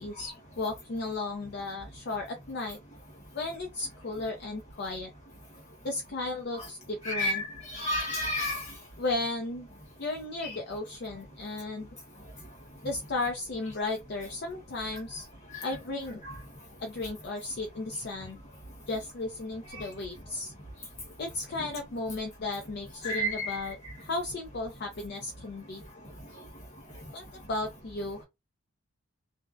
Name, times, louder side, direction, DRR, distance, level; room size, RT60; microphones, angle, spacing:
voice 1, 0.0-2.8 3.3-5.1 5.8-7.4 9.0-9.7 10.0-11.9 12.8-15.3 15.6-16.2 16.8-18.4 18.9-20.5 21.2-25.8 27.1-28.2, left 2 dB, 50° left, 0.5 m, -35 dB
voice 2, 7.0-8.6 10.4-10.6 15.5-15.7 16.2-16.3 23.0-23.6, equal, 30° left, 1.1 m, -31 dB
2.5 x 2.0 x 2.4 m
head